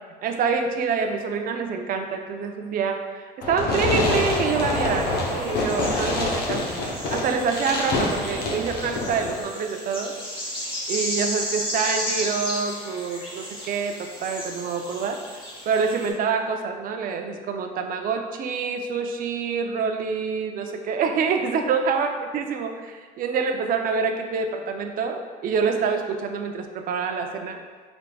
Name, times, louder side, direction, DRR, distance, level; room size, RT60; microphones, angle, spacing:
voice 1, 0.2-3.0 3.4-6.7 7.1-10.2 10.9-15.2 15.7-27.6, right 5 dB, 55° right, 5 dB, 0.4 m, -26 dB
Fireworks, 3.4-9.4, left 2 dB, 70° left, 0.8 m, -26 dB
sound 1, 4.0-16.1, equal, 30° left, 1.4 m, -34 dB
4.7 x 3.5 x 2.2 m, 1.5 s
cardioid pair, 110°, 17 cm